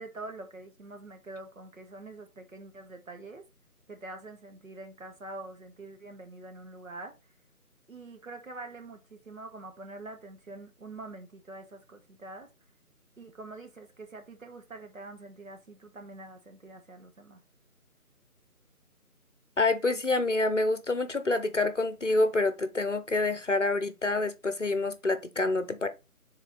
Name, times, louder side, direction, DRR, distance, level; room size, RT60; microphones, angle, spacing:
voice 1, 0.0-3.4 3.9-7.1 7.9-12.5 13.2-17.4, right 2 dB, 60° right, 1.7 m, -45 dB
voice 2, 19.6-25.9, left 2 dB, 50° left, 0.9 m, -27 dB
6.7 x 3.8 x 4.0 m
figure-of-eight pair, 180°, 45 cm